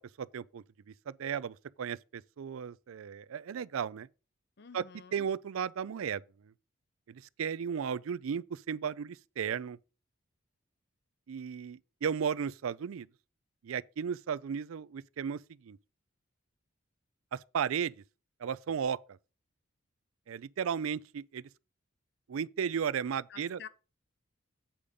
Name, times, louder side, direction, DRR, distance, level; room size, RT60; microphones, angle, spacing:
voice 1, 0.2-0.6 1.1-4.1 4.7-4.8 5.1-6.5 7.1-9.8 11.3-13.1 13.6-15.8 17.3-18.0 18.4-19.2 20.3-21.5 22.3-23.6, right 7 dB, 90° right, 0.4 m, -35 dB
voice 2, 4.6-5.3 23.3-23.7, left 6 dB, 50° left, 0.6 m, -49 dB
8.5 x 5.0 x 5.3 m
head